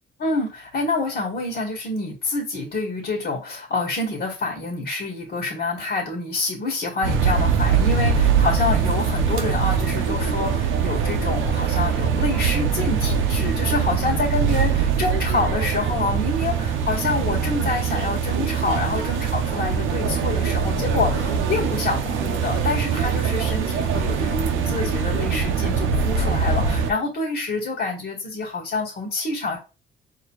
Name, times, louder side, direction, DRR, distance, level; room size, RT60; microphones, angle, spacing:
voice 1, 0.2-29.6, left 3 dB, 60° left, -1 dB, 1.6 m, -27 dB
sound 1, 7.0-26.9, right 6 dB, 85° right, 0.8 m, -22 dB
4.7 x 3.0 x 3.0 m, 0.30 s
cardioid pair, 90°, 20 cm